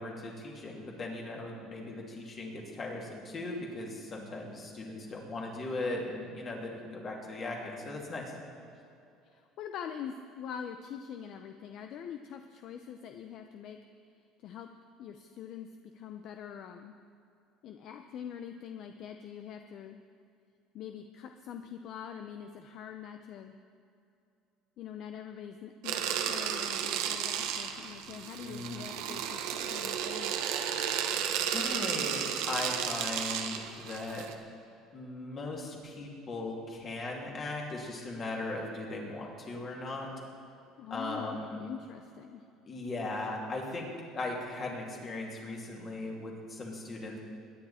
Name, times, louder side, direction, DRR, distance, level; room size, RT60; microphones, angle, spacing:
voice 1, 0.0-8.3 28.4-28.8 31.2-34.3 34.9-40.1 40.9-41.6 42.6-43.9 44.1-47.2, left 2 dB, 30° left, -1 dB, 2.9 m, -38 dB
voice 2, 9.2-13.8 14.4-14.7 15.0-17.0 17.6-20.0 20.7-23.5 24.8-30.4 40.8-42.4, left 8 dB, 55° left, 6 dB, 0.6 m, -44 dB
sound 1, 25.8-34.3, right 9 dB, 80° right, 1.1 m, -33 dB
22.0 x 10.0 x 4.3 m, 2.6 s
cardioid pair, 140°, 0 cm